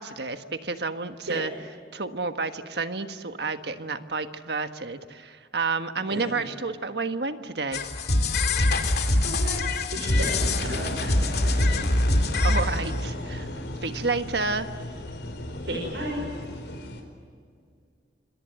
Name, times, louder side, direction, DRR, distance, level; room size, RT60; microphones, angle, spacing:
voice 1, 0.0-1.5 1.9-7.9 12.4-13.5 13.8-14.7, right 4 dB, 65° right, 8 dB, 1.4 m, -30 dB
voice 2, 6.1-6.4 9.0-11.9 15.6-16.2, right 1 dB, 85° right, 0 dB, 5.7 m, -34 dB
sound 1, 7.7-13.1, left 2 dB, 60° left, 2.7 m, -24 dB
Engine, 10.0-17.0, left 1 dB, 75° left, 4.5 m, -35 dB
26.5 x 26.0 x 7.7 m, 2.2 s
head